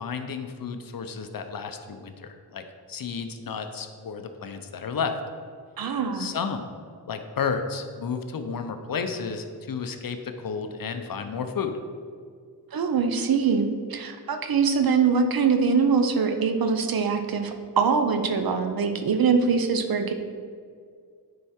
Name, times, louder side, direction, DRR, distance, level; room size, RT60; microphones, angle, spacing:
voice 1, 0.0-5.1 6.1-6.6 7.1-11.7, left 6 dB, 55° left, 7 dB, 0.8 m, -32 dB
voice 2, 5.8-6.3 12.7-20.1, right 5 dB, 60° right, 6 dB, 0.8 m, -23 dB
9.5 x 4.7 x 4.4 m, 2.1 s
wide cardioid pair, 95°, 41 cm